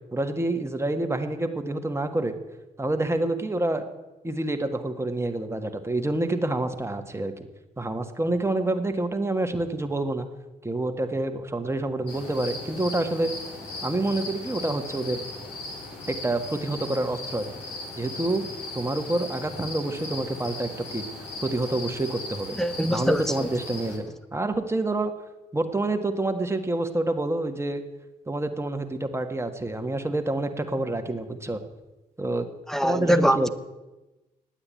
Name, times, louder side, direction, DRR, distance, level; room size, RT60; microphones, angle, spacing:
voice 1, 0.1-2.3 2.8-3.8 4.2-7.3 7.8-10.3 10.6-13.3 13.8-15.2 16.1-17.5 18.0-18.5 18.7-21.0 21.4-22.6 22.9-25.1 25.5-27.8 28.3-31.6 32.2-32.5 32.8-33.5, right 2 dB, 15° right, 1.7 m, -27 dB
sound 1, 12.1-24.0, left 2 dB, 70° left, 3.9 m, -38 dB
voice 2, 22.6-23.5 32.7-33.5, equal, ahead, 0.9 m, -23 dB
9.9 x 8.7 x 9.0 m
supercardioid pair, 50°, 18 cm